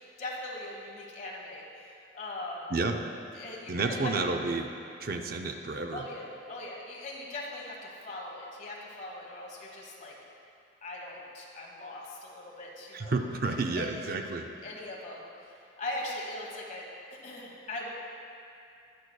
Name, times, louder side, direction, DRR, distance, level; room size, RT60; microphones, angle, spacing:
voice 1, 0.2-2.7 3.3-4.1 5.9-10.1 10.8-13.2 13.5-14.2 14.6-15.2 15.8-17.9, left 2 dB, 40° left, -2 dB, 1.3 m, -40 dB
voice 2, 3.7-4.7 5.0-6.0 12.9-14.5, right 3 dB, 50° right, 5 dB, 0.5 m, -30 dB
19.0 x 6.4 x 2.3 m, 2.5 s
head